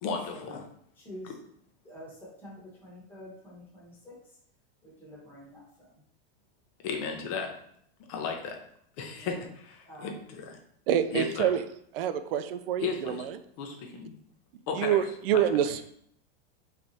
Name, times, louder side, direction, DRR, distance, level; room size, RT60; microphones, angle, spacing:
voice 1, 0.0-0.6 1.2-1.3 6.8-7.5 8.1-8.6 9.0-10.6 11.1-11.5 12.8-13.3 13.6-14.2 14.7-15.0 15.3-15.7, left 5 dB, 35° left, 3 dB, 0.6 m, -35 dB
voice 2, 1.0-1.3 1.8-4.1 4.8-5.9 9.0-9.3 9.8-10.2, equal, 5° left, -6 dB, 1.1 m, -47 dB
voice 3, 10.9-11.6 11.9-13.4 14.8-15.8, right 9 dB, 65° right, 10 dB, 0.5 m, -27 dB
3.4 x 3.2 x 3.9 m, 0.68 s
supercardioid pair, 180°, 30 cm